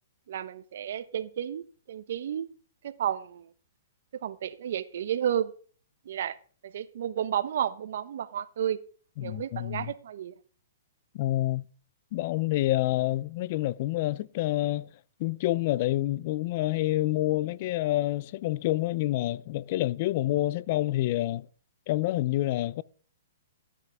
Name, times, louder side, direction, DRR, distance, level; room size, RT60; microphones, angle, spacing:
voice 1, 0.3-2.5 2.8-3.5 4.2-5.5 6.0-6.4 6.6-8.8 9.2-10.3, right 9 dB, 65° right, 1.1 m, -32 dB
voice 2, 9.2-9.9 11.1-11.7 12.1-14.9 15.2-21.5 21.9-22.8, left 16 dB, 45° left, 0.5 m, -28 dB
13.5 x 9.8 x 3.5 m
hypercardioid pair, 140°, 0 cm